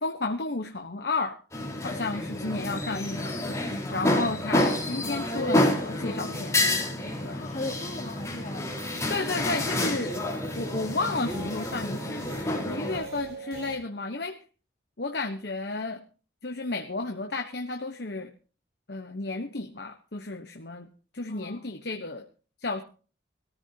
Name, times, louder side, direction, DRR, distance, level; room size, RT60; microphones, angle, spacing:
voice 1, 0.0-1.4 1.8-3.3 3.9-6.7 7.2-7.4 9.1-10.2 10.6-14.4 15.0-16.0 16.4-18.3 18.9-20.9 21.1-22.3 22.6-22.8, left 3 dB, 60° left, 4 dB, 1.1 m, -32 dB
sound 1, 1.5-13.0, left 1 dB, 15° left, 4.2 m, -29 dB
voice 2, 3.9-4.3 7.3-8.7 21.3-21.6, left 2 dB, 45° left, -4 dB, 2.7 m, -38 dB
sound 2, 8.7-13.8, right 3 dB, 60° right, 5.2 m, -44 dB
21.0 x 14.0 x 2.9 m, 0.37 s
head